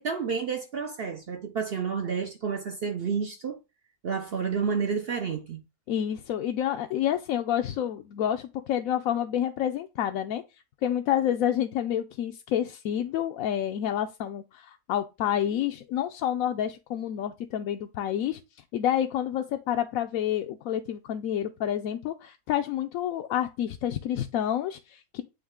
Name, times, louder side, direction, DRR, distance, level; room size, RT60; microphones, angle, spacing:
voice 1, 0.0-3.6 4.0-5.6, right 6 dB, 55° right, 0.7 m, -30 dB
voice 2, 5.9-10.4 10.8-18.4 18.7-25.2, left 10 dB, 75° left, 1.0 m, -29 dB
8.6 x 3.2 x 3.6 m
omnidirectional pair, 1.6 m